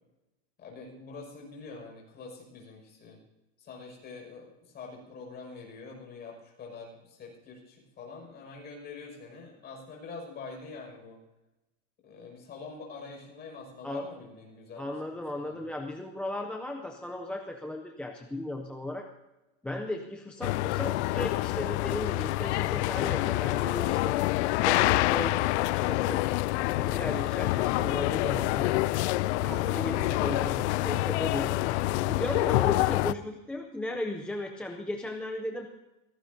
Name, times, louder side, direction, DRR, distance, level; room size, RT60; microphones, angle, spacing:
voice 1, 0.6-3.2 3.6-11.2 12.0-15.7, left 4 dB, 25° left, 0 dB, 5.9 m, -45 dB
voice 2, 14.8-19.1 19.6-24.2 24.6-25.5 25.8-26.2 26.8-28.9 29.4-31.5 32.1-35.7, left 1 dB, 5° left, 2 dB, 0.5 m, -36 dB
sound 1, 20.4-33.1, left 18 dB, 60° left, 0.5 m, -27 dB
24.0 x 17.0 x 2.7 m, 1.0 s
supercardioid pair, 160°, 38 cm